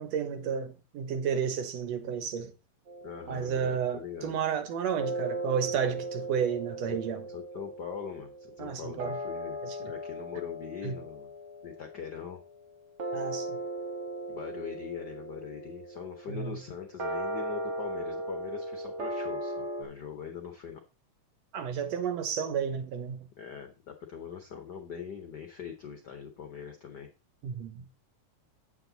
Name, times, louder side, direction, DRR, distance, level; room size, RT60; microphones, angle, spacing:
voice 1, 0.0-2.5 3.3-7.2 8.6-9.2 9.6-9.9 10.8-11.0 13.1-13.6 16.3-16.6 21.5-23.3 27.4-27.9, right 7 dB, 70° right, 2.1 m, -32 dB
sound 1, 2.9-4.2 5.0-19.8, right 1 dB, 55° right, 1.3 m, -38 dB
voice 2, 3.0-4.4 6.9-7.0 7.3-11.3 11.6-12.4 14.3-20.8 23.4-27.1, left 7 dB, 65° left, 1.0 m, -42 dB
8.7 x 8.1 x 3.9 m
omnidirectional pair, 3.3 m